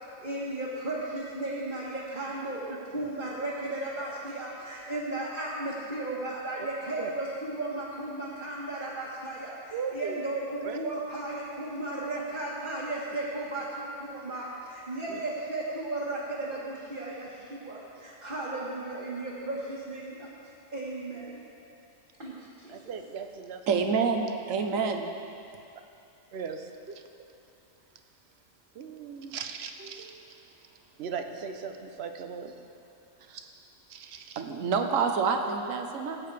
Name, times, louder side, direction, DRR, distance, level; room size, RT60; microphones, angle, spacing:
voice 1, 0.2-20.3 20.7-21.4 22.2-22.8, right 2 dB, 40° right, -8 dB, 1.6 m, -35 dB
voice 2, 9.7-10.2 10.6-10.8 15.1-15.2 22.7-23.9 24.5-24.6 26.3-26.6 28.8-30.2 31.0-32.5 33.9-34.4, right 6 dB, 60° right, 6 dB, 0.9 m, -38 dB
voice 3, 23.7-25.1 33.3-33.4 34.4-36.2, right 5 dB, 80° right, 4 dB, 1.2 m, -27 dB
17.5 x 8.6 x 3.4 m, 2.7 s
omnidirectional pair, 1.4 m